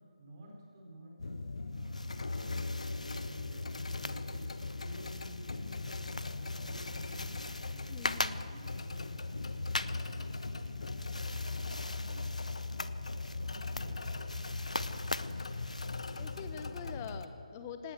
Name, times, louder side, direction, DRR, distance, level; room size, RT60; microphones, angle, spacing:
voice 1, 0.2-1.4 1.7-8.1 8.4-12.8 13.1-14.8, right 1 dB, 35° right, 0 dB, 4.3 m, -53 dB
sound 1, 1.2-17.3, left 3 dB, 60° left, 1.2 m, -39 dB
sound 2, 1.7-16.5, left 2 dB, 80° left, 0.9 m, -43 dB
voice 2, 7.9-8.4 16.1-17.9, left 7 dB, 20° left, 9 dB, 1.2 m, -44 dB
19.5 x 17.5 x 7.9 m, 2.6 s
figure-of-eight pair, 150°, 4 cm